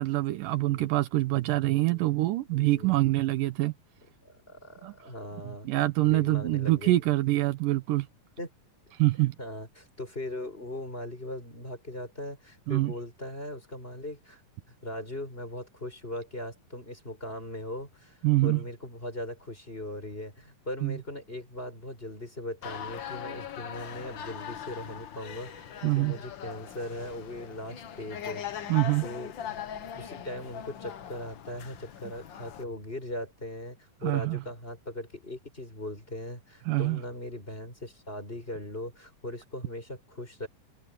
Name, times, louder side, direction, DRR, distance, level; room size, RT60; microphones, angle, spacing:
voice 1, 0.0-3.7 4.8-4.9 5.4-8.1 8.9-9.4 12.7-12.9 18.2-18.6 20.8-21.0 25.8-26.2 28.7-29.0 34.0-34.4 36.7-37.0, right 17 dB, 80° right, 2.4 m, -25 dB
voice 2, 0.6-1.0 1.6-2.0 2.5-3.1 4.2-5.7 6.0-6.9 8.4-8.5 9.2-14.4 14.8-28.7 29.0-29.6 29.9-40.5, left 1 dB, 15° left, 7.3 m, -39 dB
sound 1, 22.6-32.6, left 9 dB, 80° left, 1.0 m, -41 dB
omnidirectional pair, 3.9 m